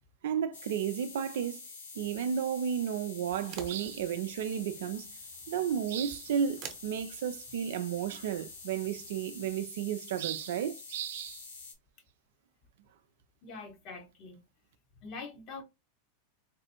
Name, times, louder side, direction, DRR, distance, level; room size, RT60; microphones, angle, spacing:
voice 1, 0.2-1.6 2.0-5.1 5.5-11.5, right 8 dB, 65° right, 0.4 m, -33 dB
sound 1, 0.5-11.7, left 4 dB, 75° left, 1.0 m, -47 dB
sound 2, 3.3-9.7, right 7 dB, 45° right, 0.9 m, -52 dB
voice 2, 13.4-14.4 15.0-15.6, left 4 dB, 45° left, 1.1 m, -44 dB
4.0 x 2.4 x 2.8 m
figure-of-eight pair, 90°, 0 cm